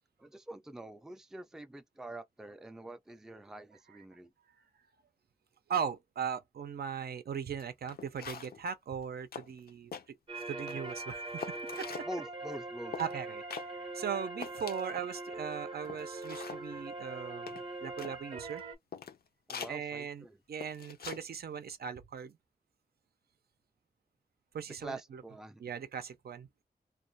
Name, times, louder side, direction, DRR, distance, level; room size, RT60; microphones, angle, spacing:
voice 1, 0.2-4.3 12.1-13.0 19.5-20.4 24.8-25.6, right 1 dB, 5° right, 0.3 m, -45 dB
voice 2, 5.7-12.1 13.0-18.6 19.7-22.4 24.5-25.2 25.6-26.5, right 7 dB, 85° right, 0.5 m, -39 dB
sound 1, 7.6-7.7 7.9-8.6 9.0-9.1 9.3-10.1 10.5-10.9 11.4-12.1 12.9-13.2 13.5-13.7 14.0-14.1 14.4-15.1 15.5-15.6 15.8-16.6 17.5-18.2 18.6-18.7 18.9-19.2 19.5-19.7 20.6-21.2 21.5-21.7, left 6 dB, 80° left, 0.5 m, -43 dB
sound 2, 10.3-18.7, right 2 dB, 35° right, 0.6 m, -42 dB
2.3 x 2.1 x 2.6 m
wide cardioid pair, 125°, 16 cm